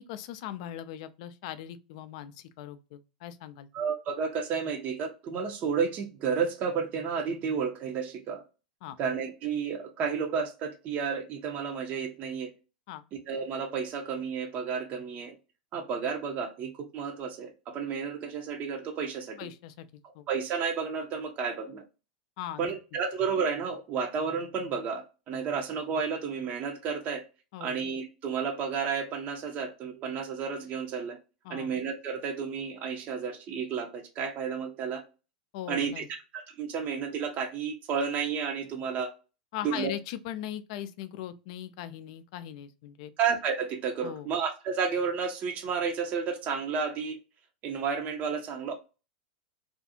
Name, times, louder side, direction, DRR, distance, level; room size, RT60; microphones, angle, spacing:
voice 1, 0.0-3.7 8.8-9.0 12.9-13.0 19.4-19.9 20.2-20.3 22.4-22.7 27.5-27.7 31.5-31.7 35.5-36.1 39.5-43.1 44.0-44.3, left 11 dB, 55° left, 0.3 m, -39 dB
voice 2, 3.7-8.4 9.0-12.5 13.1-15.4 15.7-19.5 20.0-21.8 22.6-27.3 27.6-31.2 31.5-35.0 35.7-36.0 36.3-39.1 39.6-39.9 43.2-47.2 47.6-48.8, right 6 dB, 40° right, 0.6 m, -32 dB
2.4 x 2.3 x 2.6 m
hypercardioid pair, 90°, 4 cm